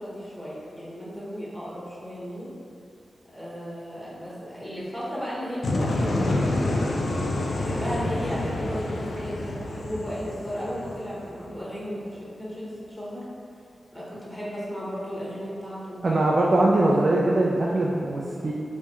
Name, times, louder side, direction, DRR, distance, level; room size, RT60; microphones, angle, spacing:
voice 1, 0.0-2.5 3.3-6.9 7.4-13.2 13.9-16.0, equal, 10° left, -8 dB, 1.3 m, -35 dB
sound 1, 5.6-11.5, left 2 dB, 70° left, 0.3 m, -28 dB
voice 2, 16.0-18.5, right 2 dB, 55° right, -4 dB, 0.4 m, -21 dB
3.4 x 3.1 x 3.0 m, 2.5 s
cardioid pair, 55°, 0 cm